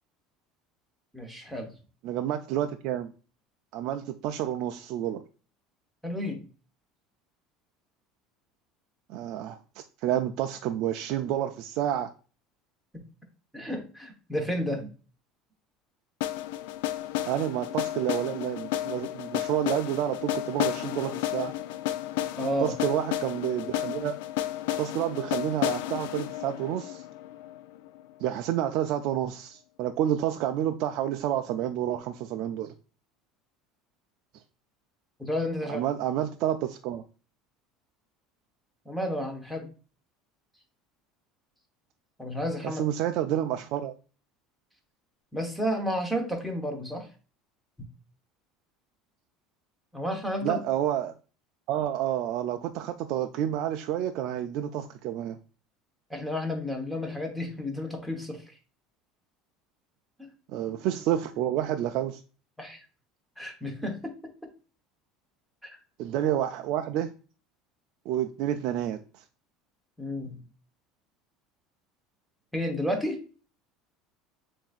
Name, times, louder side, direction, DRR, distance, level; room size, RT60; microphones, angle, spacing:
voice 1, 1.1-1.7 6.0-6.4 12.9-13.0 13.5-14.9 22.4-22.7 35.2-35.8 38.8-39.7 42.2-42.8 45.3-47.1 49.9-50.6 56.1-58.4 60.2-60.3 62.6-62.8 63.4-64.5 65.6-65.8 70.0-70.4 72.5-73.2, equal, ahead, 2 dB, 1.0 m, -31 dB
voice 2, 2.0-3.1 3.7-5.2 9.1-12.1 17.3-21.5 22.6-24.2 24.8-27.0 28.2-32.7 35.7-37.0 42.6-43.9 50.4-51.1 51.7-55.4 60.5-62.2 66.0-67.1 68.1-69.2, right 11 dB, 60° right, 6 dB, 0.3 m, -29 dB
sound 1, 16.2-28.1, left 13 dB, 85° left, 0.3 m, -32 dB
7.0 x 2.6 x 2.4 m, 0.36 s
cardioid pair, 140°, 0 cm